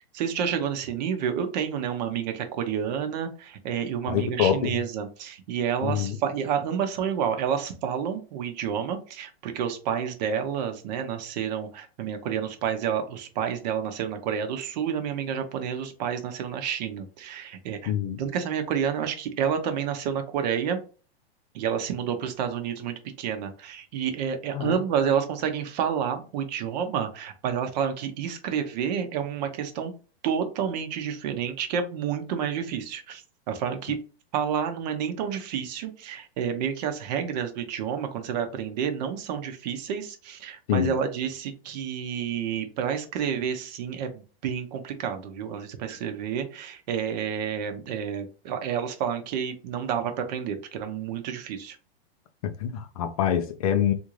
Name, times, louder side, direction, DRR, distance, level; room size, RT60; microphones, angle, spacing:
voice 1, 0.1-17.9 18.2-20.8 21.5-29.9 30.2-34.0 34.3-51.8, right 8 dB, 45° right, 0.8 m, -29 dB
voice 2, 4.1-4.7 5.8-6.2 17.9-18.2 24.5-24.8 40.7-40.9 52.6-53.9, left 9 dB, 40° left, 0.4 m, -25 dB
3.6 x 2.5 x 3.1 m
hypercardioid pair, 145°, 31 cm